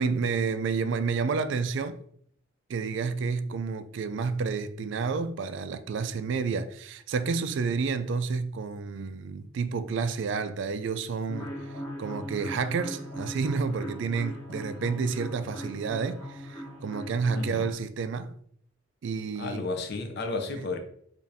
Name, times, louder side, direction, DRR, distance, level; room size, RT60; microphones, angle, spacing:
voice 1, 0.0-2.0 2.7-11.5 12.0-18.3 19.0-19.6, right 5 dB, 60° right, 0.3 m, -30 dB
sound 1, 11.3-17.7, equal, 20° left, 1.0 m, -40 dB
voice 2, 17.3-17.7 19.4-20.8, left 3 dB, 50° left, 0.6 m, -33 dB
5.0 x 2.5 x 2.7 m
head